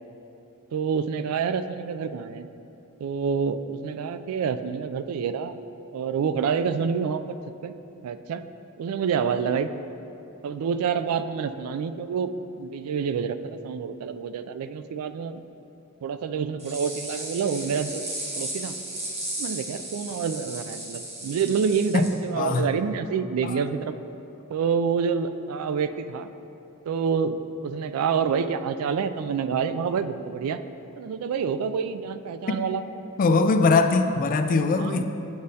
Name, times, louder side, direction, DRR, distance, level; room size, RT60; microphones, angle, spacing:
voice 1, 0.7-2.5 3.0-5.6 5.9-7.4 7.6-7.7 8.0-8.4 8.8-9.7 10.4-12.3 12.6-15.4 16.0-18.1 18.4-18.8 19.4-24.0 24.5-26.3 26.9-30.6 31.0-32.8 34.8-35.0, right 6 dB, 85° right, 11 dB, 0.3 m, -27 dB
sound 1, 16.6-22.1, right 1 dB, 30° right, 1.2 m, -35 dB
voice 2, 22.4-22.7 23.4-23.6 32.5-32.6 33.2-35.0, left 3 dB, 40° left, 7 dB, 0.3 m, -21 dB
8.0 x 6.3 x 2.8 m, 2.9 s
head